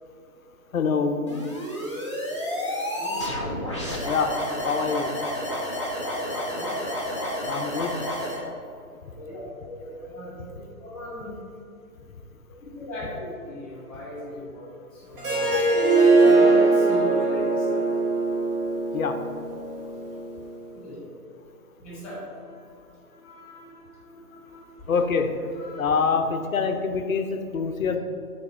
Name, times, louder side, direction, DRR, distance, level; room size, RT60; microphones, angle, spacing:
voice 1, 0.7-1.2 4.1-4.3 4.6-5.1 7.4-7.9 18.9-19.2 24.9-25.3 25.8-28.0, left 5 dB, 60° left, 6 dB, 0.7 m, -25 dB
sound 1, 1.3-8.4, left 1 dB, 20° left, 0.5 m, -30 dB
voice 2, 2.6-3.2 6.0-6.7 9.1-10.4 10.8-11.3 12.8-14.7 14.9-15.5 15.9-17.9 20.7-21.0 21.8-22.8 23.1-24.6 25.5-26.1, left 1 dB, 5° left, -6 dB, 1.6 m, -38 dB
Harp, 15.2-20.3, right 3 dB, 35° right, 1.5 m, -21 dB
7.8 x 4.0 x 4.3 m, 2.5 s
figure-of-eight pair, 150°, 47 cm